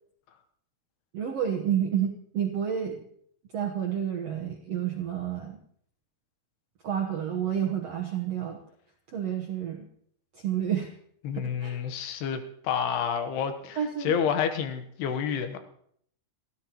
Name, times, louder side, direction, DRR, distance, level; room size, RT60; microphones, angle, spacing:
voice 1, 1.1-3.0 3.5-5.6 6.8-8.6 9.1-9.9 10.3-10.9 11.3-11.8 13.8-14.2, right 9 dB, 70° right, 1 dB, 1.5 m, -30 dB
voice 2, 11.2-15.6, left 7 dB, 80° left, 8 dB, 3.2 m, -29 dB
29.5 x 13.5 x 3.0 m, 0.66 s
omnidirectional pair, 4.6 m